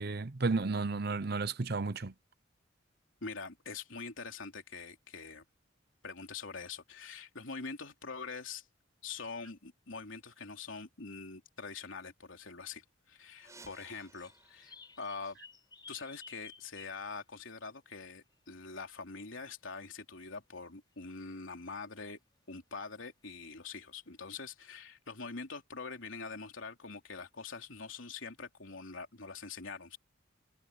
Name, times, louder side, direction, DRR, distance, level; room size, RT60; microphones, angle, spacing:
voice 1, 0.0-2.1, right 3 dB, 50° right, 0.8 m, -32 dB
voice 2, 3.2-5.4 6.0-8.7 9.0-15.4 15.9-22.2 22.5-30.0, left 4 dB, 80° left, 3.2 m, -44 dB
sound 1, 13.4-16.0, right 3 dB, 15° right, 6.0 m, -59 dB
sound 2, 14.0-17.0 18.3-18.4 23.6-23.7 24.7-24.8, left 5 dB, 20° left, 5.6 m, -54 dB
head